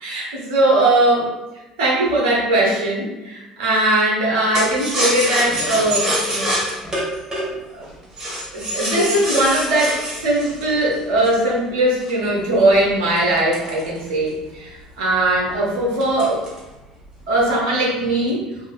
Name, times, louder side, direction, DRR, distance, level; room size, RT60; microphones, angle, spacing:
voice 1, 0.0-1.3 1.8-6.5 7.7-7.8 8.5-14.7 15.0-16.4 17.3-18.4, right 1 dB, 70° right, -4 dB, 1.0 m, -19 dB
sound 1, 4.5-11.5 12.0-14.4 14.8-14.9 15.2-15.6 16.0-16.7 17.0-17.6, equal, 20° right, 1.4 m, -25 dB
4.0 x 2.6 x 2.5 m, 1.0 s
figure-of-eight pair, 55°, 3 cm